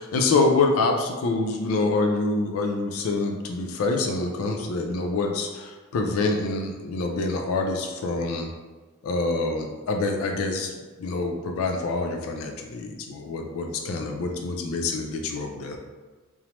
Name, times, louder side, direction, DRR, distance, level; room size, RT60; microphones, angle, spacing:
voice 1, 0.0-8.5 9.0-10.7 11.0-15.8, left 3 dB, 80° left, 3 dB, 0.4 m, -26 dB
3.0 x 2.0 x 2.9 m, 1.3 s
head